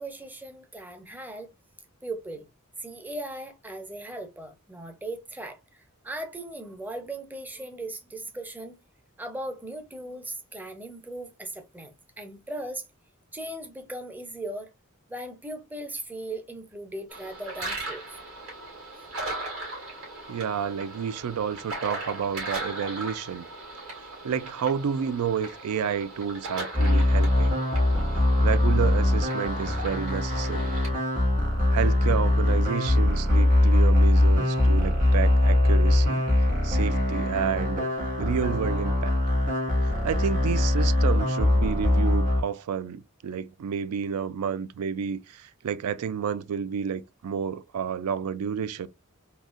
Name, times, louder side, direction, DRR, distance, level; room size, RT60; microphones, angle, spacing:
voice 1, 0.0-1.5 2.0-2.4 2.8-5.6 6.0-8.8 9.2-12.9 13.3-14.7 15.1-18.2, right 1 dB, 10° right, 0.5 m, -38 dB
sound 1, 17.1-30.9, right 2 dB, 65° right, 2.2 m, -38 dB
voice 2, 20.3-23.5 24.2-27.6 28.4-30.8 31.7-36.2 36.6-37.9 38.2-39.2 40.0-48.9, right 7 dB, 85° right, 0.4 m, -30 dB
sound 2, 26.7-42.4, left 1 dB, 35° right, 1.8 m, -22 dB
3.9 x 2.7 x 2.4 m
head